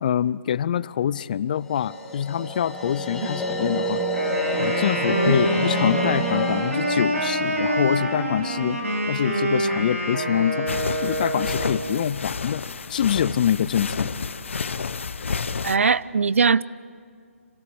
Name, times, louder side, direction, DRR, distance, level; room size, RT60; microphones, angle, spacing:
voice 1, 0.0-4.0 4.6-8.8 9.1-10.7 11.0-12.6 12.9-14.2, left 9 dB, 35° left, 20 dB, 0.5 m, -25 dB
sound 1, 1.6-8.8, equal, 5° left, 1.6 m, -29 dB
Wind instrument woodwind instrument, 4.1-11.8, right 1 dB, 85° right, 6.2 m, -26 dB
sound 2, 10.7-15.8, left 5 dB, 60° left, 0.8 m, -30 dB
voice 2, 15.6-16.6, right 5 dB, 65° right, 20 dB, 0.5 m, -20 dB
26.5 x 17.0 x 6.9 m, 2.2 s
figure-of-eight pair, 145°, 8 cm